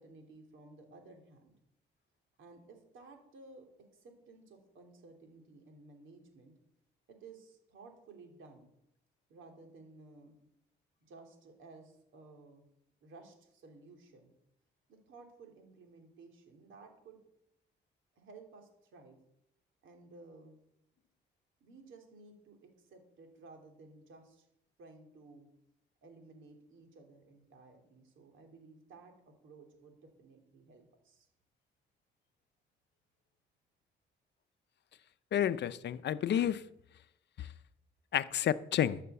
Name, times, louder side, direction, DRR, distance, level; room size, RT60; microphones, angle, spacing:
voice 1, 0.0-1.5 2.4-6.5 7.1-8.7 9.3-10.4 11.0-12.7 13.0-14.3 14.9-17.2 18.1-19.2 19.8-20.5 21.6-24.5 24.8-25.5 26.0-31.3, right 3 dB, 75° right, 3.1 m, -56 dB
voice 2, 35.3-36.6 37.4-37.5 38.1-39.0, left 10 dB, 60° left, 0.6 m, -30 dB
13.5 x 6.6 x 6.9 m
cardioid pair, 90°, 20 cm